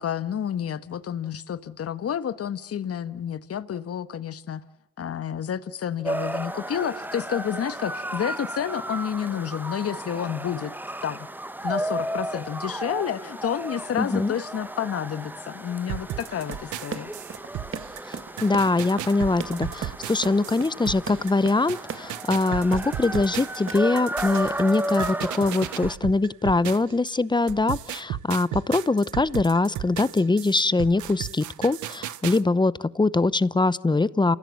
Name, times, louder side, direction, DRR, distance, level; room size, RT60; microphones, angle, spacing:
voice 1, 0.0-4.6 5.0-10.7 11.0-11.3 11.6-17.1, left 9 dB, 50° left, 13 dB, 1.4 m, -30 dB
sound 1, 6.0-26.0, right 1 dB, 5° right, 1.2 m, -34 dB
voice 2, 14.0-14.3 18.4-34.4, left 3 dB, 15° left, 19 dB, 0.8 m, -23 dB
sound 2, 15.9-27.1 27.5-32.4, right 12 dB, 75° right, 1.0 m, -35 dB
Run, 16.4-23.3 23.7-24.0 24.3-24.7, right 6 dB, 45° right, 1.9 m, -38 dB
29.0 x 16.0 x 7.7 m, 0.86 s
cardioid pair, 90°, 30 cm